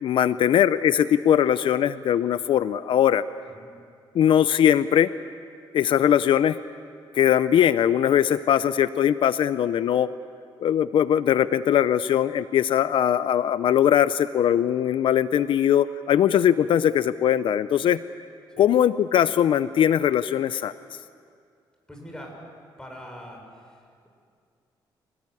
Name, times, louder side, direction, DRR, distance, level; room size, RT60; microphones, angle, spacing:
voice 1, 0.0-3.2 4.1-5.1 5.7-6.6 7.1-10.1 10.6-18.0 18.6-20.7, left 10 dB, 70° left, 14 dB, 0.6 m, -20 dB
voice 2, 21.9-22.3 22.8-23.4 23.6-23.8, equal, 10° left, 1 dB, 6.7 m, -42 dB
26.0 x 18.0 x 9.8 m, 2.3 s
cardioid pair, 110°, 9 cm